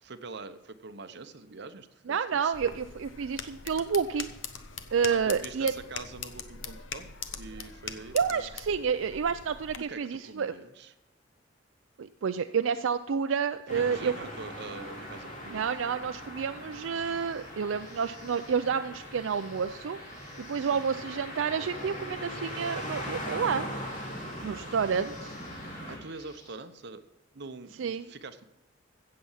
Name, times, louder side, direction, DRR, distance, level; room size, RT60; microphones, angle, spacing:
voice 1, 0.0-2.8 5.1-8.5 9.8-10.9 13.7-15.7 20.6-20.8 25.9-27.0 27.3-28.4, right 3 dB, 60° right, 9 dB, 0.9 m, -44 dB
voice 2, 2.1-4.3 4.9-5.7 8.1-10.5 12.0-14.1 15.5-20.0 20.4-23.7 24.4-25.4 27.8-28.1, right 6 dB, 85° right, 9 dB, 0.4 m, -29 dB
sound 1, 2.5-9.8, left 7 dB, 75° left, 0.9 m, -42 dB
sound 2, 13.7-26.0, equal, 40° left, 2.9 m, -40 dB
sound 3, 16.9-26.6, left 1 dB, 20° left, 2.3 m, -55 dB
15.5 x 7.7 x 5.6 m, 0.96 s
head